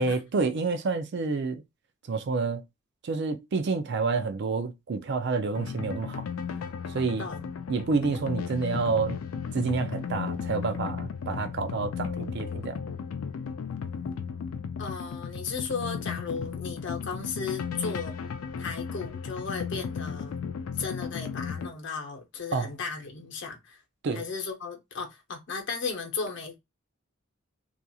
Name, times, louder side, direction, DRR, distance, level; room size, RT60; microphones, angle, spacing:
voice 1, 0.0-1.6 2.1-2.6 3.0-6.3 6.9-7.3 7.7-9.2 9.5-12.8 22.5-22.7 24.0-24.2, right 4 dB, 55° right, 0.4 m, -28 dB
sound 1, 5.5-21.7, left 6 dB, 75° left, 0.4 m, -35 dB
voice 2, 14.8-18.1 18.6-20.4 20.7-23.8 24.1-26.6, left 5 dB, 60° left, 0.7 m, -35 dB
2.8 x 2.4 x 2.3 m
head